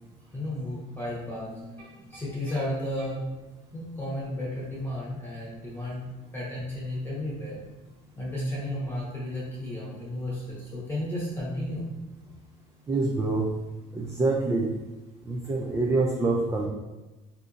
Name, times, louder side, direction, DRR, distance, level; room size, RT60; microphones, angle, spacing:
voice 1, 0.3-3.3 3.7-6.0 6.3-7.6 8.2-11.8, left 1 dB, 10° left, -6 dB, 1.0 m, -33 dB
voice 2, 12.9-13.5 13.9-14.7 15.3-16.7, right 3 dB, 20° right, -1 dB, 0.4 m, -26 dB
3.7 x 2.7 x 2.5 m, 1.1 s
cardioid pair, 110°, 17 cm